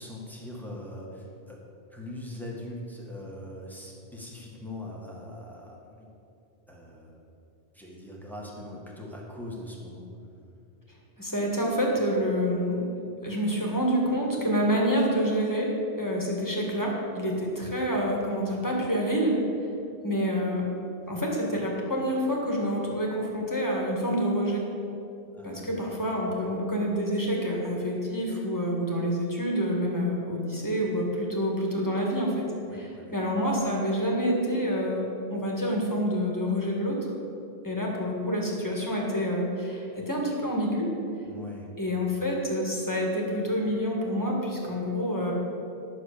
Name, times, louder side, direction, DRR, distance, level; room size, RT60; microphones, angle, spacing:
voice 1, 0.0-1.6 1.9-6.1 6.7-7.2 7.7-10.1 25.4-25.9 26.3-26.5 32.7-33.1 41.2-41.7, left 1 dB, ahead, -3 dB, 1.7 m, -41 dB
voice 2, 11.2-12.8 13.2-19.3 20.0-20.6 21.1-24.6 25.4-32.5 32.7-35.0 35.3-37.1 37.6-40.9 41.8-45.3, equal, 20° left, -2 dB, 1.9 m, -27 dB
10.5 x 6.7 x 6.9 m, 2.7 s
omnidirectional pair, 1.1 m